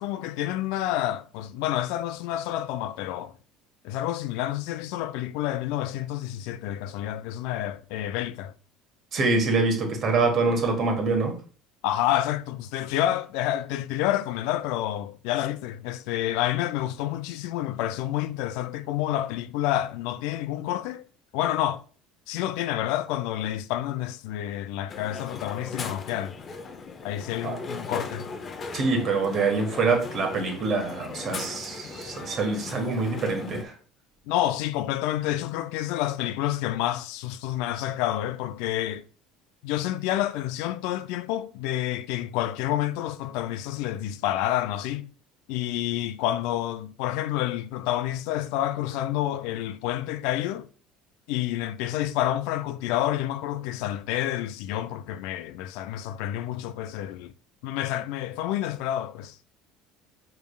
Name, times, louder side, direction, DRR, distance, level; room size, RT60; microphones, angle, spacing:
voice 1, 0.0-3.3 3.8-8.5 11.8-21.0 21.3-21.8 22.3-26.3 27.0-28.3 34.3-39.0 39.6-45.1 45.5-50.7 51.3-57.3 57.6-59.4, left 13 dB, 75° left, 0.3 m, -29 dB
voice 2, 9.1-11.3 27.4-27.6 28.7-33.7, right 3 dB, 45° right, 1.3 m, -25 dB
Crowd, 24.9-33.6, left 4 dB, 35° left, 0.6 m, -38 dB
5.1 x 3.4 x 2.3 m
supercardioid pair, 105°, 0 cm